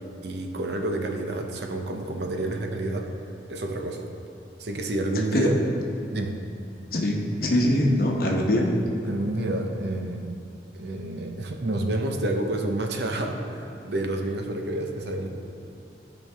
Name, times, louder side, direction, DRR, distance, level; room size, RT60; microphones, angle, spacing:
voice 1, 0.2-3.1 3.5-4.1 4.6-5.6 6.1-6.4 9.1-10.3 10.7-15.3, right 2 dB, 65° right, 3 dB, 0.8 m, -29 dB
voice 2, 6.9-8.7 9.1-9.2, left 1 dB, 55° left, -1 dB, 1.0 m, -23 dB
14.5 x 5.4 x 3.5 m, 2.6 s
head